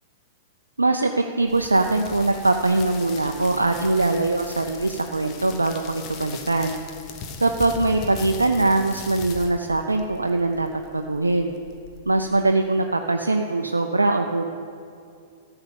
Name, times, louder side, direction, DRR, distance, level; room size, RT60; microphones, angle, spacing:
voice 1, 0.8-6.8 7.4-10.7 10.9-11.5 12.1-14.4, right 2 dB, 80° right, 4 dB, 0.5 m, -22 dB
sound 1, 1.5-12.4, left 5 dB, 35° left, 1.2 m, -39 dB
13.0 x 6.8 x 7.0 m, 2.4 s
figure-of-eight pair, 100°, 0 cm